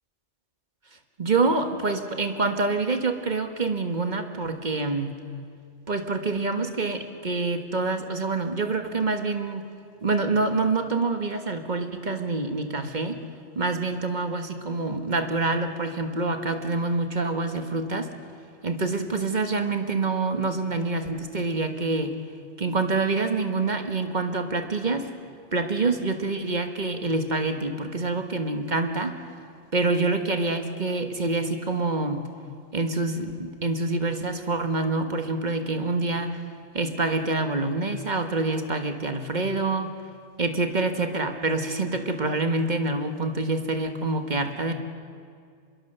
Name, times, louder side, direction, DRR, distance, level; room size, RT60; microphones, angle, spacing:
voice 1, 1.2-5.1 5.9-9.6 10.0-13.2 13.5-18.1 18.6-22.2 22.6-25.1 25.5-29.2 29.7-32.3 32.7-36.4 36.7-39.9 40.4-44.7, right 3 dB, 40° right, 6 dB, 1.6 m, -26 dB
24.5 x 22.0 x 6.8 m, 2.2 s
omnidirectional pair, 1.3 m